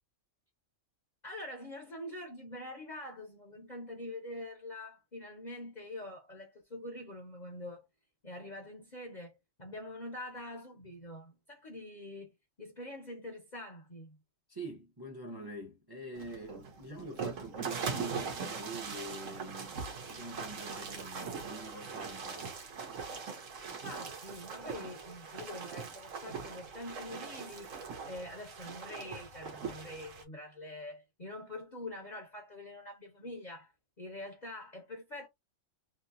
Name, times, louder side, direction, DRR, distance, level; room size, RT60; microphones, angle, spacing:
voice 1, 1.2-7.9 8.2-14.2 23.6-27.7 28.1-35.3, left 1 dB, 40° left, 0.8 m, -45 dB
voice 2, 14.5-19.8 20.1-22.5, right 1 dB, 20° right, 0.7 m, -45 dB
sound 1, 16.1-30.2, right 5 dB, 70° right, 1.3 m, -41 dB
3.1 x 2.8 x 2.6 m
omnidirectional pair, 1.4 m